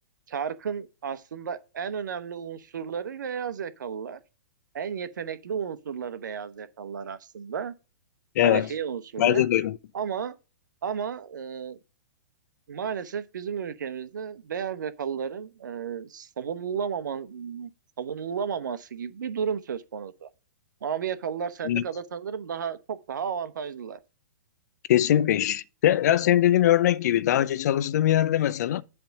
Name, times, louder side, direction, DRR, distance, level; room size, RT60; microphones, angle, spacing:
voice 1, 0.3-4.2 4.7-7.7 8.4-9.5 9.9-10.4 10.8-11.8 12.7-17.7 18.0-20.3 20.8-24.0, right 7 dB, 75° right, 0.9 m, -33 dB
voice 2, 8.4-8.7 9.2-9.8 21.7-21.8 24.9-28.8, left 12 dB, 60° left, 0.6 m, -22 dB
7.9 x 3.5 x 6.6 m
hypercardioid pair, 125°, 10 cm